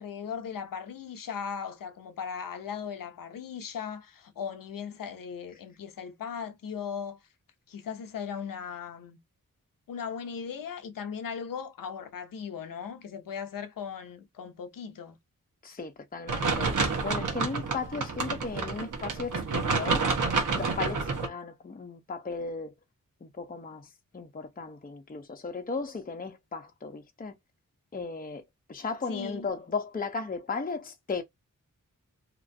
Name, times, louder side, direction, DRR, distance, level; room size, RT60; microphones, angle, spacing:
voice 1, 0.0-7.2 7.7-9.2 9.9-15.2 29.1-29.5, left 7 dB, 85° left, 0.6 m, -38 dB
voice 2, 15.6-20.1 20.5-22.7 23.2-27.3 27.9-28.4 28.7-31.2, left 4 dB, 25° left, 0.6 m, -36 dB
sound 1, 16.3-21.3, right 4 dB, 70° right, 1.0 m, -29 dB
2.9 x 2.5 x 2.5 m
wide cardioid pair, 70°, 32 cm